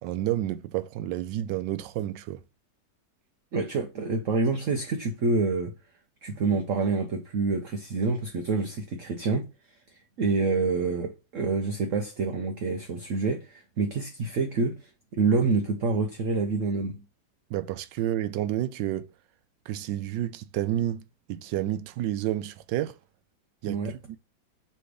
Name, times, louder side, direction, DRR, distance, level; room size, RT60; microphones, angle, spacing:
voice 1, 0.0-2.4 17.5-19.1 19.7-23.0 23.6-23.8 24.1-24.2, right 13 dB, 80° right, 1.3 m, -30 dB
voice 2, 3.5-5.7 6.2-9.5 10.2-17.0 23.7-23.9, right 4 dB, 55° right, 1.0 m, -27 dB
6.9 x 3.2 x 4.9 m
omnidirectional pair, 1.9 m